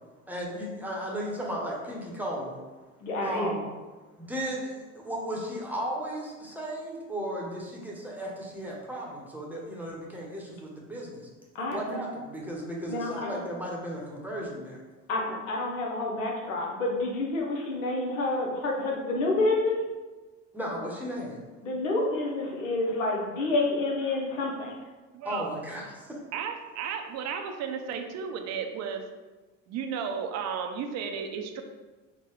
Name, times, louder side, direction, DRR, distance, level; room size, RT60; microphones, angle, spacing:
voice 1, 0.3-2.6 3.2-3.6 4.2-11.3 11.7-14.8 20.5-21.4 25.2-26.2, equal, 5° right, -3 dB, 0.8 m, -35 dB
voice 2, 3.0-3.5 11.5-11.8 12.9-13.4 15.1-19.8 21.6-24.8, left 2 dB, 85° left, -1 dB, 0.8 m, -28 dB
voice 3, 25.1-25.5 26.3-29.0 29.7-31.6, right 7 dB, 45° right, 6 dB, 0.5 m, -34 dB
3.9 x 2.1 x 3.1 m, 1.3 s
hypercardioid pair, 75°, 38 cm